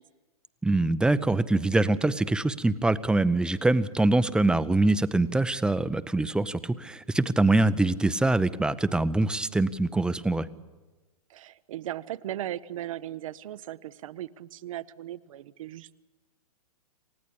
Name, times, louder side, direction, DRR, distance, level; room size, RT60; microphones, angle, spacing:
voice 1, 0.6-10.5, right 2 dB, 5° right, 14 dB, 0.6 m, -24 dB
voice 2, 11.3-15.9, right 12 dB, 55° right, 14 dB, 0.7 m, -37 dB
28.5 x 16.0 x 8.5 m, 1.2 s
hypercardioid pair, 120°, 20 cm